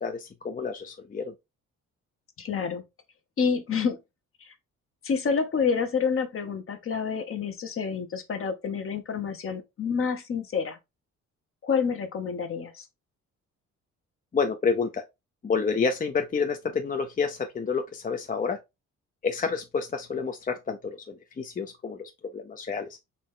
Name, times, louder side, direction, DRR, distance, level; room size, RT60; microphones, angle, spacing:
voice 1, 0.0-1.3 14.3-15.0 15.4-18.6 19.2-22.9, left 5 dB, 30° left, 0.6 m, -29 dB
voice 2, 2.4-2.8 3.4-4.0 4.4-4.5 5.0-10.8 11.6-12.9, left 6 dB, 45° left, 1.0 m, -28 dB
4.1 x 3.1 x 3.6 m
cardioid pair, 90°, 30 cm